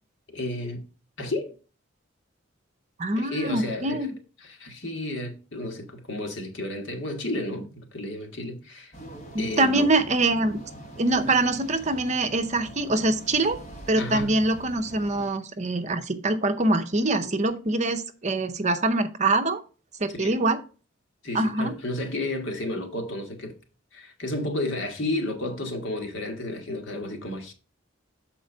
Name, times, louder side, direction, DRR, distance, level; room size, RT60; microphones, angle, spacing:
voice 1, 0.3-0.8 1.2-1.6 3.1-4.1 4.4-8.9 9.4-9.9 14.0-14.3 20.2-20.4 21.2-23.5 23.9-27.5, left 1 dB, 65° left, 1.6 m, -32 dB
voice 2, 3.0-4.1 9.3-10.6 11.0-13.6 13.9-19.6 20.0-20.6 21.3-21.7, right 2 dB, 35° right, 0.7 m, -24 dB
sound 1, 8.9-15.3, right 1 dB, 35° left, 1.7 m, -43 dB
7.0 x 4.4 x 5.4 m
head